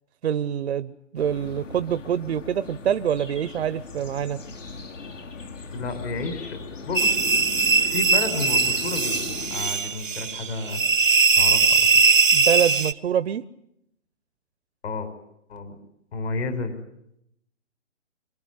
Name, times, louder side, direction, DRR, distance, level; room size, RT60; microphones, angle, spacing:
voice 1, 0.2-4.4 12.3-13.4, right 9 dB, 55° right, 14 dB, 1.0 m, -25 dB
sound 1, 1.2-9.8, left 4 dB, 80° left, 5.3 m, -38 dB
voice 2, 5.7-6.6 6.9-7.2 7.8-9.2 9.5-10.8 11.4-12.0 14.8-15.1 15.5-15.8 16.1-16.8, left 3 dB, 60° left, 9 dB, 5.4 m, -31 dB
sound 2, 6.9-12.9, right 4 dB, 80° right, 1.3 m, -20 dB
26.5 x 22.5 x 9.6 m, 0.79 s
hypercardioid pair, 150°, 37 cm